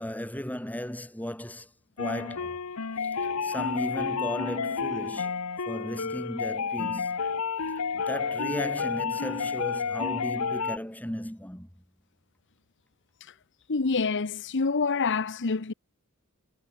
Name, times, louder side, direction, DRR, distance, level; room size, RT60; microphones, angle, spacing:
voice 1, 0.0-1.7 2.0-2.6 3.0-3.1 3.4-5.4 5.6-7.1 7.9-11.7, equal, 5° left, 3.3 m, -35 dB
sound 1, 2.0-10.8, left 5 dB, 85° left, 1.0 m, -30 dB
voice 2, 13.7-15.7, left 4 dB, 55° left, 0.9 m, -27 dB
head